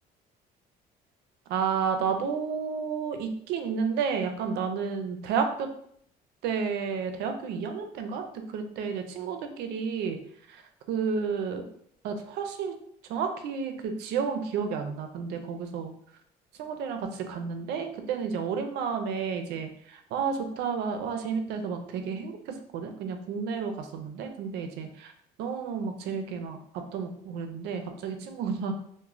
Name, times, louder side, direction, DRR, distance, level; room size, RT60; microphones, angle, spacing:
voice 1, 1.5-5.7 6.4-10.2 10.5-10.6 10.9-11.6 12.0-12.7 13.1-15.9 16.6-22.3 22.7-25.1 25.4-26.6 26.9-28.7, right 6 dB, 80° right, 6 dB, 0.4 m, -31 dB
3.0 x 2.1 x 2.4 m, 0.67 s
cardioid pair, 110°, 17 cm